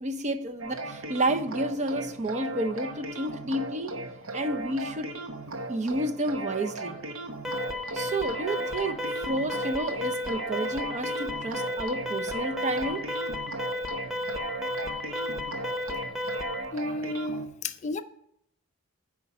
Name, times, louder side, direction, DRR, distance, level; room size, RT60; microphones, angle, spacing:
voice 1, 0.0-3.9 4.3-5.1 5.7-7.0 7.9-9.0 9.3-13.1, right 1 dB, 35° right, 0.6 m, -30 dB
sound 1, 0.6-17.5, right 2 dB, 70° right, 0.9 m, -37 dB
Alarm, 7.4-16.7, left 1 dB, ahead, 0.8 m, -33 dB
voice 2, 16.7-18.0, left 2 dB, 35° left, 0.4 m, -32 dB
8.2 x 5.1 x 5.8 m
head